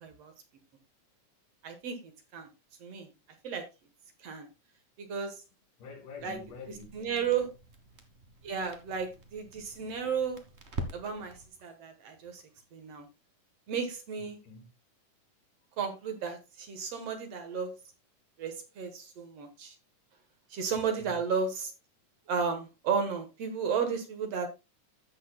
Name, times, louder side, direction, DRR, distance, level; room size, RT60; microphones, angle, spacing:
voice 1, 0.0-0.3 1.6-2.0 2.3-2.5 2.8-3.1 3.4-3.6 4.2-4.5 5.1-5.3 6.2-6.4 6.9-7.5 8.4-10.4 10.9-11.3 11.6-12.4 12.7-13.1 13.7-14.4 15.8-17.7 18.4-19.7 20.5-21.7 22.3-24.5, right 6 dB, 60° right, 2.2 m, -33 dB
voice 2, 5.8-7.5 14.2-14.7 20.7-21.2, left 4 dB, 80° left, 4.0 m, -48 dB
Crackle, 6.2-11.5, right 2 dB, 40° right, 0.9 m, -45 dB
16.0 x 6.6 x 2.2 m
omnidirectional pair, 3.6 m